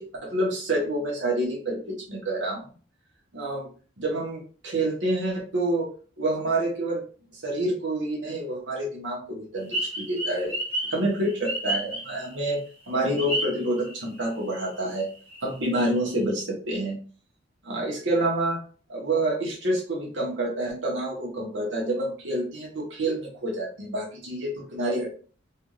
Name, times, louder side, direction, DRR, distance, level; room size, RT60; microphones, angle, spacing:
voice 1, 0.0-2.7 3.3-3.7 4.0-5.9 6.2-7.0 7.3-10.5 10.9-15.1 15.4-17.0 17.6-18.6 18.9-25.1, right 1 dB, 75° right, -2 dB, 1.2 m, -28 dB
sound 1, 9.7-12.5 13.1-14.2 14.6-14.7 15.1-16.1, right 1 dB, 30° right, 1.1 m, -31 dB
3.4 x 2.5 x 3.1 m, 0.39 s
head